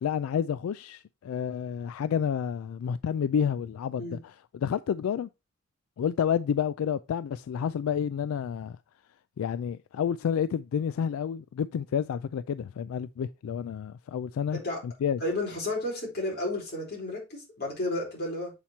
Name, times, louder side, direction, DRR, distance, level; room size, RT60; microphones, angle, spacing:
voice 1, 0.0-5.3 6.0-8.8 9.4-15.2, left 8 dB, 80° left, 0.3 m, -30 dB
voice 2, 15.2-18.5, left 1 dB, 50° left, 4.4 m, -32 dB
7.3 x 4.3 x 4.4 m
head